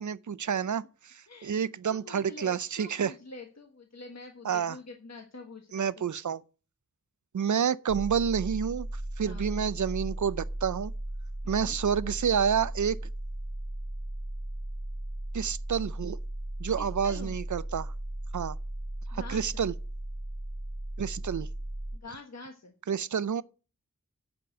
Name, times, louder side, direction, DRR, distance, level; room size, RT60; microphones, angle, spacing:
voice 1, 0.0-3.1 4.4-4.8 5.7-6.4 7.3-8.9 9.2-10.9 11.5-13.0 15.3-16.2 16.6-17.9 18.3-18.6 19.1-19.7 21.0-21.5 22.9-23.4, right 7 dB, 65° right, 0.5 m, -29 dB
voice 2, 1.9-6.1 9.2-9.5 11.4-11.8 16.8-17.4 19.1-19.7 21.9-22.7, left 3 dB, 55° left, 1.4 m, -46 dB
sound 1, 7.9-22.0, right 1 dB, 20° right, 1.5 m, -37 dB
10.0 x 5.2 x 7.6 m
wide cardioid pair, 50°, 33 cm